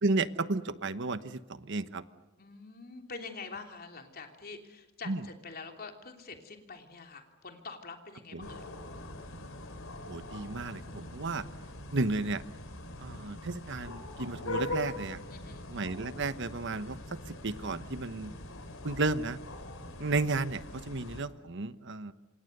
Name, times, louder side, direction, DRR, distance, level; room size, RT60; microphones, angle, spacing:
voice 1, 0.0-2.0 5.1-5.2 8.3-8.5 10.1-11.4 11.9-12.4 13.0-15.2 15.7-17.0 17.3-18.3 18.8-19.4 20.0-22.1, right 3 dB, 60° right, 13 dB, 1.1 m, -33 dB
voice 2, 2.4-8.6 15.3-15.6, left 4 dB, 50° left, 4 dB, 3.2 m, -45 dB
sound 1, 8.4-21.2, left 2 dB, 75° left, 3.5 m, -42 dB
27.0 x 27.0 x 6.7 m, 1.0 s
head